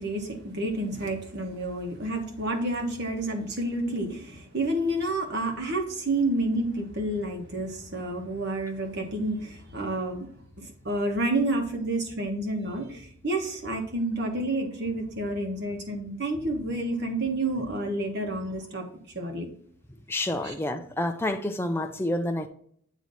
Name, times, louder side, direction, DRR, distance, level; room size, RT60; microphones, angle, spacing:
voice 1, 0.0-10.3 10.6-18.8 19.1-19.5 20.4-20.5, right 1 dB, 50° right, 1.4 m, -29 dB
voice 2, 20.1-22.5, left 1 dB, 10° left, 0.5 m, -28 dB
9.2 x 3.1 x 4.1 m
head